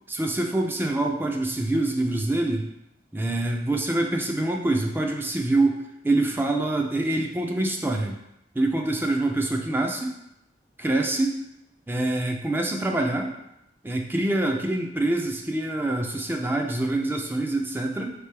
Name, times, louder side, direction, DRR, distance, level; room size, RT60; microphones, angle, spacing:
voice 1, 0.1-2.7 3.1-8.2 8.5-10.1 10.8-11.4 11.9-13.3 13.8-18.1, right 2 dB, 10° right, 2 dB, 0.3 m, -25 dB
4.9 x 3.3 x 3.3 m, 0.85 s
head